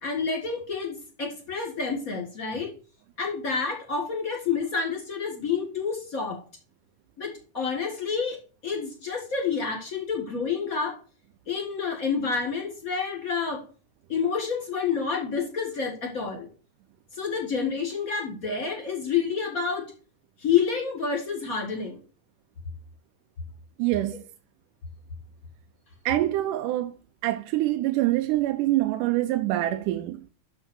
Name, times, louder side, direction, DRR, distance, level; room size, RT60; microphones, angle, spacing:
voice 1, 0.0-2.7 3.2-6.4 7.2-11.0 11.5-13.6 14.1-16.5 17.1-19.9 20.4-22.0, left 5 dB, 35° left, 1.5 m, -29 dB
voice 2, 23.8-24.2 26.1-26.9 27.2-30.3, right 15 dB, 85° right, 2.1 m, -25 dB
6.5 x 5.6 x 6.2 m
omnidirectional pair, 3.6 m